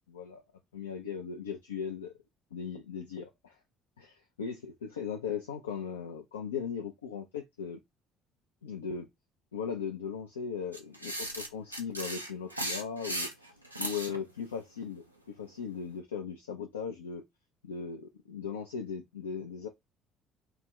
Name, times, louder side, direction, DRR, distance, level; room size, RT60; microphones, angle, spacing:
voice 1, 0.1-0.4 0.7-2.1 2.5-3.6 4.0-7.8 8.6-9.1 9.5-13.3 13.8-15.0 15.4-17.2 17.6-19.7, left 6 dB, 75° left, 0.3 m, -38 dB
sound 1, 10.7-14.2, right 1 dB, 90° right, 0.4 m, -36 dB
2.3 x 2.1 x 3.5 m
figure-of-eight pair, 50°, 0 cm